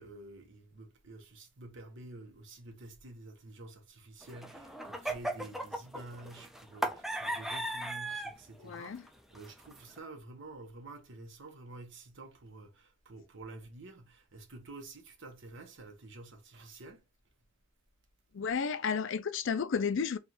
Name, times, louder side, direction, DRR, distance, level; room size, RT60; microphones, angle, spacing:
voice 1, 0.0-8.9 9.3-17.0, right 2 dB, 65° right, 1.0 m, -49 dB
sound 1, 4.2-8.4 8.7-9.1 9.4-10.0, right 1 dB, ahead, 0.4 m, -37 dB
voice 2, 8.6-9.0 18.3-20.2, left 6 dB, 65° left, 0.4 m, -32 dB
3.4 x 2.4 x 4.3 m
head